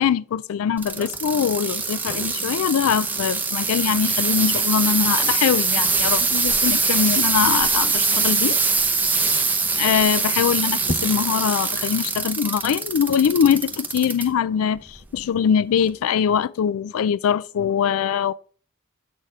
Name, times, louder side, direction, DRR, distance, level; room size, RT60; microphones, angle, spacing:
voice 1, 0.0-8.6 9.8-18.3, left 8 dB, 90° left, 0.3 m, -22 dB
sound 1, 0.8-14.2 14.8-15.2 15.9-16.0, right 4 dB, 10° right, 0.7 m, -23 dB
7.9 x 6.5 x 3.6 m
head